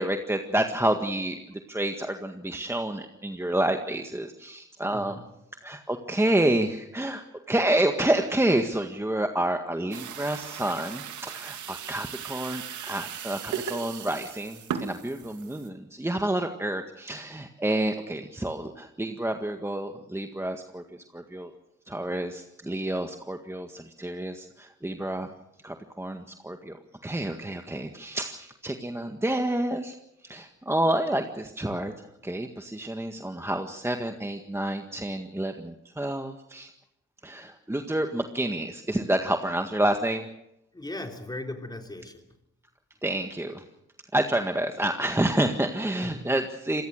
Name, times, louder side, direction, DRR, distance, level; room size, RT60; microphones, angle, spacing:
voice 1, 0.0-5.2 5.6-20.8 21.1-21.5 21.9-25.3 25.6-26.8 27.0-30.0 30.2-36.7 37.2-40.3 43.0-43.6 44.1-46.8, right 1 dB, 10° right, 5 dB, 1.8 m, -29 dB
voice 2, 4.9-5.3 40.7-42.2 46.0-46.3, left 2 dB, 15° left, 4 dB, 3.4 m, -38 dB
sound 1, 9.9-15.7, right 8 dB, 75° right, 2.4 m, -37 dB
26.5 x 20.0 x 6.6 m, 0.84 s
cardioid pair, 90°, 30 cm